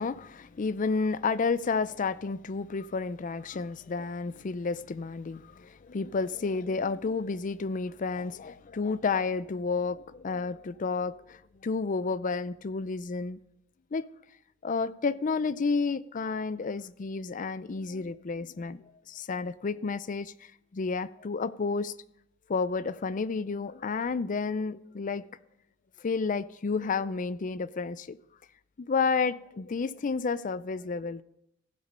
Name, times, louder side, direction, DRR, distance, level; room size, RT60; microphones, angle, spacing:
voice 1, 0.0-13.4 13.9-14.0 14.6-20.3 20.7-21.9 22.5-25.2 26.0-28.2 28.8-31.2, left 4 dB, 40° left, 0.4 m, -31 dB
15.0 x 8.1 x 5.4 m
head